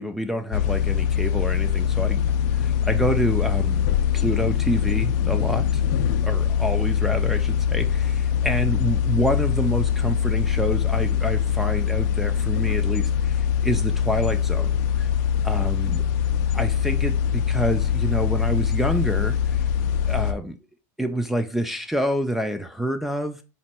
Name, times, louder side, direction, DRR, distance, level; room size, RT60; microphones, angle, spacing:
voice 1, 0.0-2.2 2.5-3.9 4.1-5.8 6.2-15.1 15.4-16.1 16.5-19.6 20.1-20.5 21.0-23.4, equal, ahead, 0.3 m, -27 dB
sound 1, 0.5-20.3, left 8 dB, 65° left, 0.4 m, -23 dB
4.1 x 2.2 x 4.2 m
supercardioid pair, 150°, 10 cm